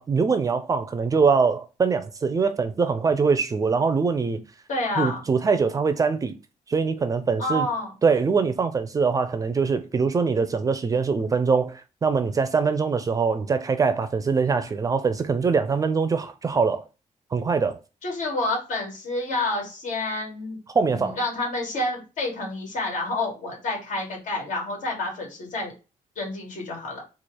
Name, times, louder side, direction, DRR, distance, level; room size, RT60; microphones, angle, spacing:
voice 1, 0.0-4.4 5.0-6.3 6.7-7.7 8.0-16.8 17.3-17.8 20.7-21.2, right 5 dB, 25° right, 0.4 m, -23 dB
voice 2, 4.7-5.2 7.4-7.9 18.0-20.6 20.9-25.7 26.2-27.0, left 2 dB, 75° left, 2.1 m, -29 dB
4.3 x 2.4 x 4.7 m
wide cardioid pair, 170°, 13 cm